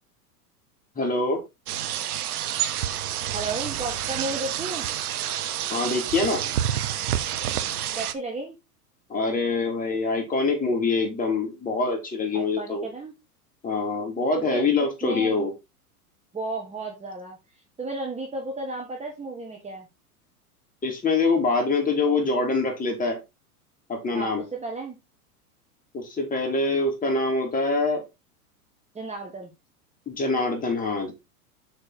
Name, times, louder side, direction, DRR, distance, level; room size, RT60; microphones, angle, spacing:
voice 1, 1.0-1.4 5.7-6.4 9.1-12.9 13.6-15.5 20.8-23.2 23.9-24.4 25.9-28.0 30.1-31.1, left 3 dB, 15° left, 1 dB, 3.5 m, -25 dB
sound 1, 1.7-8.1, right 11 dB, 70° right, 1.2 m, -28 dB
voice 2, 3.3-4.9 8.0-8.6 12.3-13.1 14.4-15.4 16.3-17.4 17.8-19.9 24.1-25.0 28.9-29.5, right 2 dB, 15° right, 1 dB, 1.8 m, -33 dB
6.7 x 6.5 x 4.1 m, 0.23 s
hypercardioid pair, 105°, 47 cm